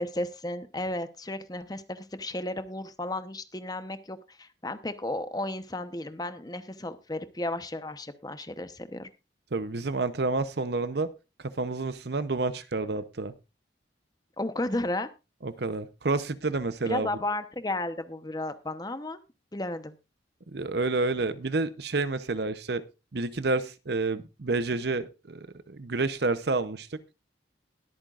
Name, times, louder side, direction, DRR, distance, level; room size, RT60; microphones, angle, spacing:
voice 1, 0.0-9.1 14.4-15.1 16.8-19.2 19.5-19.9, left 1 dB, 20° left, 10 dB, 0.9 m, -33 dB
voice 2, 9.5-11.1 11.6-13.3 15.4-17.1 20.5-22.8 23.1-26.9, right 3 dB, 55° right, 13 dB, 0.8 m, -29 dB
21.0 x 8.9 x 2.5 m, 0.28 s
head